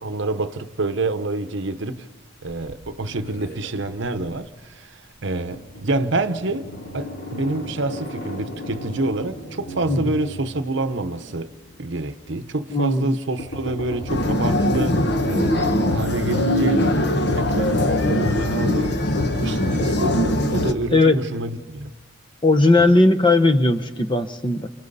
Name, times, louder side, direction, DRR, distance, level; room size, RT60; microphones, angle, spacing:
voice 1, 0.0-2.1 2.4-11.5 11.8-19.0 19.3-21.9 22.8-22.9, right 2 dB, 55° right, 0.9 m, -27 dB
sound 1, 2.4-4.4 5.2-5.3 5.5-11.9 13.4-15.9, equal, 80° left, 4.8 m, -36 dB
voice 2, 12.7-13.1 20.9-21.2 22.4-24.7, left 2 dB, 20° left, 0.9 m, -17 dB
sound 2, 14.1-20.7, left 1 dB, 50° left, 1.3 m, -21 dB
29.0 x 29.0 x 4.1 m
head